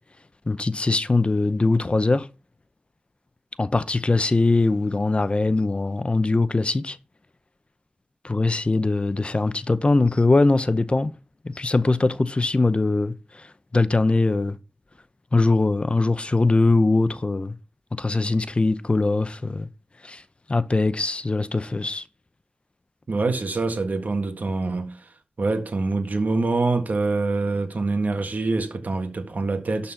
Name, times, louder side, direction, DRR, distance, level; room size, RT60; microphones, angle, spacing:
voice 1, 0.5-2.3 3.6-7.0 8.2-11.1 11.4-14.6 15.3-17.6 18.0-19.7 20.0-20.2 20.5-22.0, left 3 dB, 40° left, 0.7 m, -21 dB
voice 2, 23.1-25.1 25.4-29.9, right 3 dB, 75° right, 1.8 m, -25 dB
12.0 x 4.2 x 5.7 m
wide cardioid pair, 70°, 3 cm